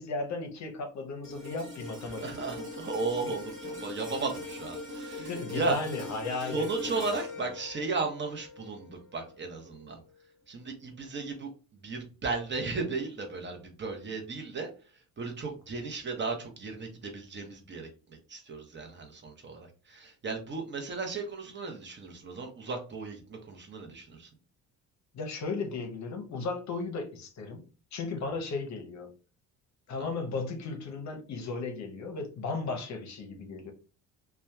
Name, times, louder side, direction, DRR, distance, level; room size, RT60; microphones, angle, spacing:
voice 1, 0.0-2.4 5.1-7.0 25.1-27.6 27.9-29.1 29.9-33.7, left 3 dB, 50° left, 0.7 m, -35 dB
sound 1, 1.2-9.6 10.0-10.2, left 2 dB, 45° right, 1.4 m, -41 dB
voice 2, 2.2-5.8 6.4-10.0 10.5-11.5 11.8-14.7 15.2-24.3, right 3 dB, 30° right, 0.8 m, -35 dB
2.7 x 2.3 x 2.2 m
cardioid pair, 90°, 36 cm